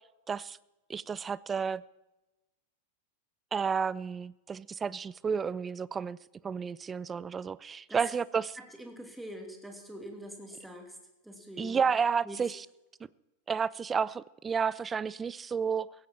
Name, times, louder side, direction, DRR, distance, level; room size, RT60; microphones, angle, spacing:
voice 1, 0.3-0.6 0.9-1.8 3.5-6.2 6.4-8.6 11.6-12.7 13.5-15.9, right 6 dB, 20° right, 0.4 m, -31 dB
voice 2, 8.6-11.0 11.2-11.9 12.2-12.4, equal, 5° right, 2.7 m, -44 dB
17.0 x 16.0 x 4.4 m
figure-of-eight pair, 90°, 0 cm